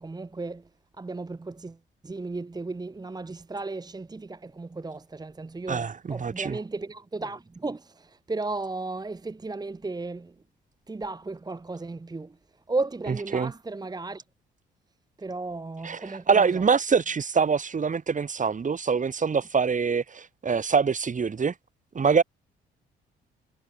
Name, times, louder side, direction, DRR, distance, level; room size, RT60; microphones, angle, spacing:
voice 1, 0.1-0.5 1.0-1.3 2.1-4.0 4.6-5.0 5.4-5.8 6.3-6.6 7.2-7.4 7.6-7.8 8.3-9.1 9.4-10.2 10.9-12.2 12.7-13.5 13.8-14.1 15.2-16.2, right 3 dB, 20° right, 1.1 m, -33 dB
voice 2, 5.7-6.6 13.0-13.5 15.8-21.5 22.0-22.2, right 5 dB, 35° right, 1.9 m, -25 dB
supercardioid pair, 60°, 21 cm